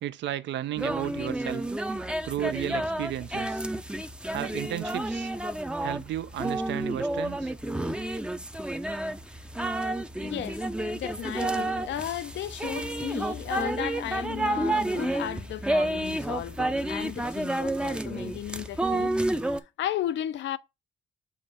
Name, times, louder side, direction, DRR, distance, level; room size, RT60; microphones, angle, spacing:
voice 1, 0.0-1.6 2.2-3.6 4.3-5.3 5.8-7.5, right 12 dB, 65° right, 0.5 m, -33 dB
sound 1, 0.8-19.6, right 1 dB, 5° right, 0.5 m, -30 dB
voice 2, 10.1-10.6 10.9-19.1 19.5-20.6, left 12 dB, 70° left, 0.5 m, -34 dB
7.1 x 2.5 x 5.3 m
cardioid pair, 90°, 20 cm